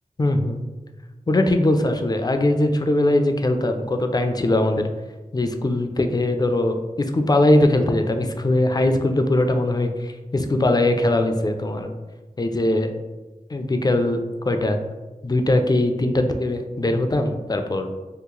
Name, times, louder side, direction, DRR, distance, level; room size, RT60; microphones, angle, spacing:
voice 1, 0.2-0.6 1.3-4.9 5.3-11.9 12.4-12.9 13.5-14.2 14.4-14.8 15.2-17.9, left 1 dB, 30° left, 6 dB, 0.4 m, -21 dB
2.9 x 2.4 x 3.7 m, 1.2 s
wide cardioid pair, 60°, 14 cm